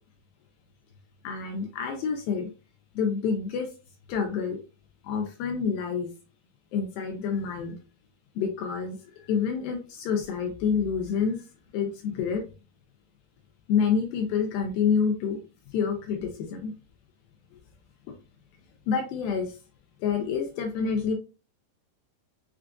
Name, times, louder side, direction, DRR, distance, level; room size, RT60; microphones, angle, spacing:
voice 1, 1.2-2.5 3.0-3.7 4.1-4.6 5.0-6.1 6.7-7.8 8.4-9.0 9.3-11.4 11.7-12.4 13.7-15.4 15.7-16.7 18.1-18.2 18.9-19.6 20.0-21.2, left 6 dB, 80° left, 4 dB, 2.2 m, -27 dB
6.5 x 2.4 x 2.3 m, 0.33 s
omnidirectional pair, 4.6 m